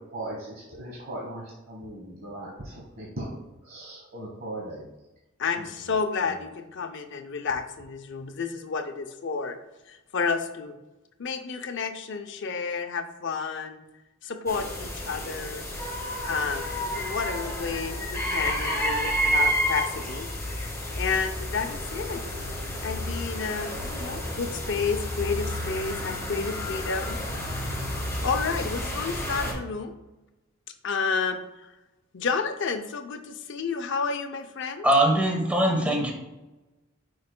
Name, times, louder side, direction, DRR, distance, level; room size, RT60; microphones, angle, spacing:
voice 1, 0.0-4.9 5.6-5.9 6.2-6.4, right 1 dB, 50° right, -4 dB, 1.2 m, -39 dB
voice 2, 5.4-9.6 9.9-10.7 11.2-13.8 14.2-15.6 16.2-20.3 20.9-22.2 22.8-27.2 27.9-29.9 30.8-31.7 32.1-34.9, left 5 dB, 65° left, 7 dB, 0.6 m, -31 dB
sound 1, 14.5-29.5, equal, 15° left, 1.8 m, -30 dB
voice 3, 34.8-36.1, right 1 dB, 5° right, 1 dB, 1.0 m, -21 dB
9.5 x 4.6 x 2.2 m, 1.0 s
head